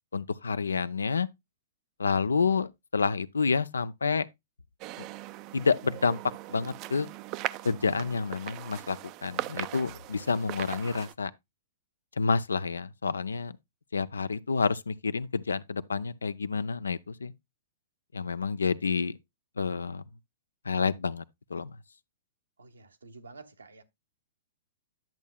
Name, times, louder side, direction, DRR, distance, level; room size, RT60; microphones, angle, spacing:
voice 1, 0.1-1.3 2.0-4.3 5.5-6.2 6.5-7.1 7.6-11.3 12.2-13.6 13.9-17.3 18.1-19.2 19.6-20.0 20.7-21.2 21.5-21.8, left 5 dB, 85° left, 0.5 m, -29 dB
sound 1, 4.8-11.1, right 17 dB, 40° right, 0.4 m, -39 dB
voice 2, 22.6-23.8, right 3 dB, 85° right, 1.1 m, -50 dB
10.5 x 7.3 x 2.2 m
hypercardioid pair, 115°, 0 cm